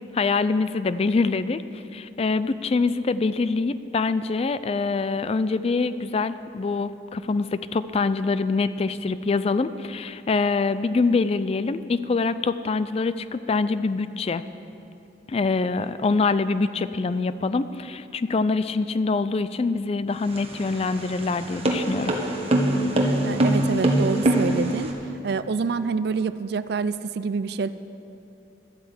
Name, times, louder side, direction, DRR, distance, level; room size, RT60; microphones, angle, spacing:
voice 1, 0.1-1.6 1.9-14.5 15.3-22.2, left 4 dB, 35° left, 14 dB, 0.4 m, -24 dB
sound 1, 20.2-24.9, right 1 dB, 35° right, 1.4 m, -23 dB
voice 2, 23.2-24.9 25.2-27.7, right 5 dB, 60° right, 14 dB, 0.4 m, -27 dB
12.0 x 9.1 x 8.0 m, 2.8 s
head